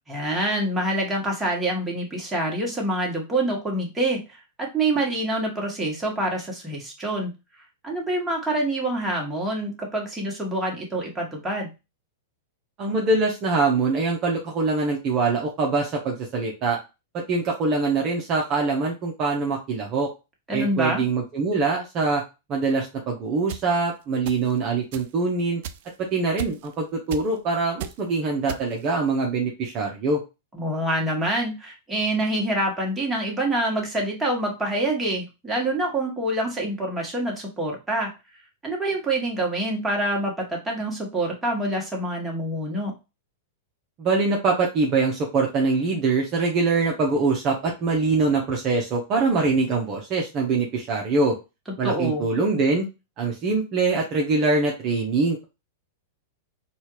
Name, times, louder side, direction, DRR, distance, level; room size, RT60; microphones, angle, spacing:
voice 1, 0.1-4.2 4.6-7.3 7.8-11.7 20.5-21.0 30.5-38.1 38.6-42.9 51.7-52.3, right 1 dB, 10° right, -2 dB, 1.6 m, -26 dB
voice 2, 12.8-16.8 17.1-20.1 20.5-22.2 22.5-25.6 26.1-30.2 44.0-51.4 51.8-52.9 53.2-55.4, right 3 dB, 40° right, -1 dB, 0.9 m, -23 dB
sound 1, 23.5-23.6 24.2-24.6 24.9-25.1 25.6-25.9 26.4-26.7 27.1-27.4 27.8-28.0 28.5-28.9, right 9 dB, 55° right, 0.3 m, -35 dB
4.2 x 2.5 x 3.1 m, 0.27 s
hypercardioid pair, 100°, 0 cm